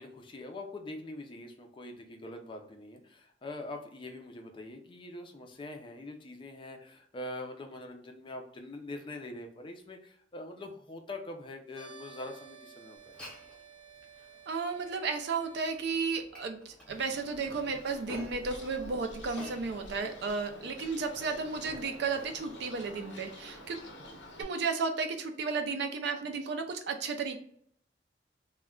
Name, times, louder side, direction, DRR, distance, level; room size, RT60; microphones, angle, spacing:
voice 1, 0.0-13.2, left 2 dB, 30° left, 4 dB, 0.4 m, -43 dB
sound 1, 11.7-15.8, right 6 dB, 80° right, 0.8 m, -53 dB
Glass, 13.0-22.9, left 1 dB, 5° left, 0.8 m, -52 dB
voice 2, 14.5-23.8 24.4-27.4, right 4 dB, 65° right, 6 dB, 0.4 m, -33 dB
Bird, 16.9-24.4, left 1 dB, 85° left, 0.6 m, -49 dB
2.3 x 2.1 x 3.5 m, 0.64 s
head